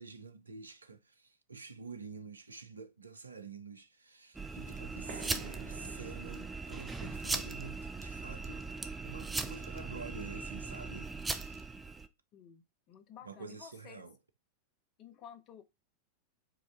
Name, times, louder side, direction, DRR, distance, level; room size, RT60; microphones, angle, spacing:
voice 1, 0.0-8.7 9.0-11.7 13.2-14.2, right 4 dB, 80° right, 0.5 m, -48 dB
sound 1, 4.3-12.1, right 3 dB, 10° right, 0.4 m, -39 dB
sound 2, 5.0-10.3, right 5 dB, 45° right, 1.0 m, -54 dB
voice 2, 12.3-14.0 15.0-15.6, left 8 dB, 35° left, 0.6 m, -53 dB
4.8 x 2.5 x 3.4 m
figure-of-eight pair, 90°, 0 cm